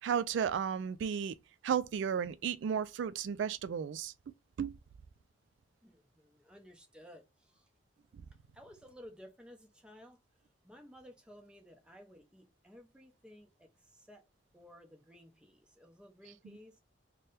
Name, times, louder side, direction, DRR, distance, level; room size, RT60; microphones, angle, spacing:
voice 1, 0.0-1.4 1.6-4.1 4.6-4.7, right 7 dB, 75° right, 0.3 m, -33 dB
voice 2, 5.8-7.7 8.5-10.2 10.6-14.2 14.5-16.8, equal, 5° right, 0.7 m, -56 dB
3.3 x 2.2 x 4.1 m
head